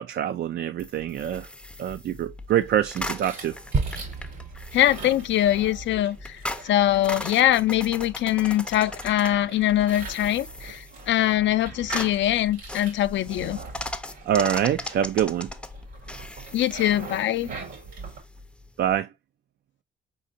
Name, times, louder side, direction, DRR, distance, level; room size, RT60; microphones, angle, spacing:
voice 1, 0.0-1.5 1.8-3.5 14.3-15.5 18.8-19.1, right 10 dB, 55° right, 0.4 m, -25 dB
sound 1, 0.8-19.0, left 1 dB, 5° left, 0.5 m, -39 dB
sound 2, 2.7-18.2, right 4 dB, 85° right, 2.2 m, -42 dB
sound 3, 3.7-8.1, right 4 dB, 40° right, 0.7 m, -34 dB
voice 2, 4.7-13.6 16.5-17.5, left 13 dB, 65° left, 0.5 m, -23 dB
4.2 x 3.8 x 2.6 m
cardioid pair, 90°, 20 cm